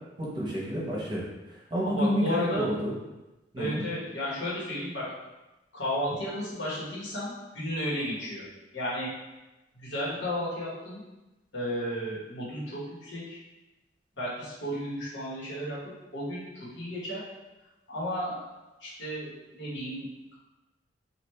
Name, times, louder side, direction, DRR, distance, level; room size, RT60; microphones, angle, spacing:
voice 1, 0.2-2.9 3.5-3.8, equal, 25° right, -5 dB, 0.8 m, -30 dB
voice 2, 1.8-2.7 3.6-5.1 5.7-9.1 9.7-11.0 11.5-13.4 14.1-17.3 17.9-18.5 18.8-20.4, equal, 90° left, -7 dB, 1.2 m, -33 dB
3.2 x 2.4 x 3.2 m, 1.0 s
head